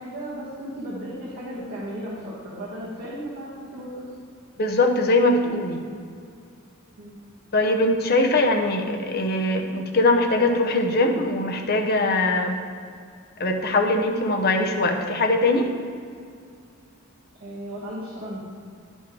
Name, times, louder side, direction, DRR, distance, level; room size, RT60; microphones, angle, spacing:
voice 1, 0.0-4.1 7.0-7.2 17.4-18.4, equal, 45° right, -9 dB, 1.8 m, -35 dB
voice 2, 4.6-5.8 7.5-12.6 13.4-15.7, left 2 dB, 45° left, 3 dB, 0.9 m, -21 dB
11.0 x 5.5 x 4.7 m, 2.3 s
head